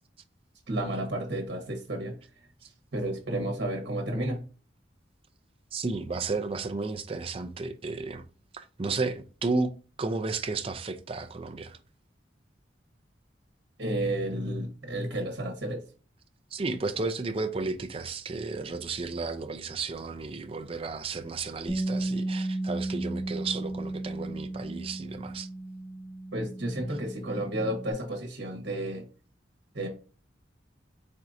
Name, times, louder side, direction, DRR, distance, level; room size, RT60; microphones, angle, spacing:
voice 1, 0.7-2.2 2.9-4.4 13.8-15.8 26.3-29.0 29.7-29.9, right 1 dB, 60° right, 1.2 m, -31 dB
voice 2, 5.7-8.2 8.5-9.7 10.0-11.8 16.5-25.5, right 3 dB, 30° right, 0.5 m, -33 dB
Bass guitar, 21.7-27.9, right 2 dB, 10° left, 1.0 m, -34 dB
4.4 x 3.7 x 2.6 m
head